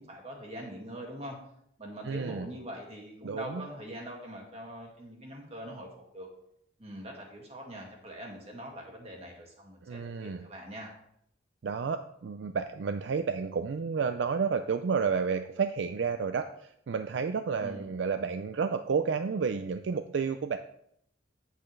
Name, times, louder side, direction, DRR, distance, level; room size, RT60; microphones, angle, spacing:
voice 1, 0.0-1.4 1.8-6.3 6.8-10.9 17.6-17.9, equal, 35° right, -1 dB, 2.0 m, -43 dB
voice 2, 2.0-2.5 3.2-3.6 9.8-10.5 11.6-20.6, right 5 dB, 65° right, 9 dB, 0.4 m, -31 dB
8.7 x 8.1 x 3.2 m, 0.72 s
head